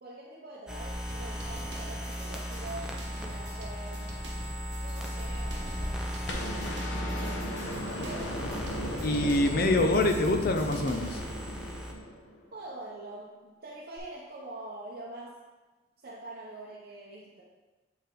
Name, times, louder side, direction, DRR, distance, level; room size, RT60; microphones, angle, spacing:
voice 1, 0.0-4.1 4.8-6.9 7.2-8.3 12.5-15.4 16.0-17.4, right 2 dB, 60° right, -5 dB, 0.8 m, -45 dB
sound 1, 0.7-11.9, equal, 5° right, 0.6 m, -37 dB
sound 2, 1.1-11.2, right 1 dB, 80° right, 1.1 m, -47 dB
sound 3, 6.3-12.5 14.0-14.1, equal, 90° left, 0.9 m, -36 dB
voice 2, 9.0-11.2, left 2 dB, 55° left, 5 dB, 0.6 m, -25 dB
8.2 x 3.5 x 3.7 m, 1.2 s
head